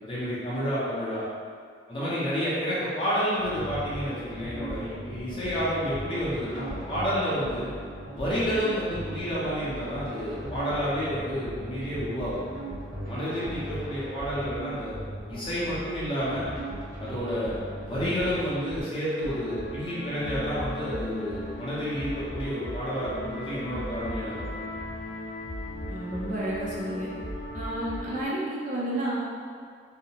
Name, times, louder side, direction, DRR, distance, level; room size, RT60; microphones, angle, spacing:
voice 1, 0.0-1.2 1.9-7.7 8.1-12.4 13.1-14.9 15.3-16.5 17.0-17.6 17.8-24.8, equal, 25° left, -10 dB, 0.7 m, -30 dB
sound 1, 3.4-18.8, right 1 dB, 60° right, 1.0 m, -38 dB
sound 2, 19.2-28.2, left 1 dB, 65° left, 0.4 m, -36 dB
voice 2, 25.9-27.1 27.5-29.2, right 1 dB, 45° right, -7 dB, 0.5 m, -31 dB
2.8 x 2.0 x 2.8 m, 2.1 s
head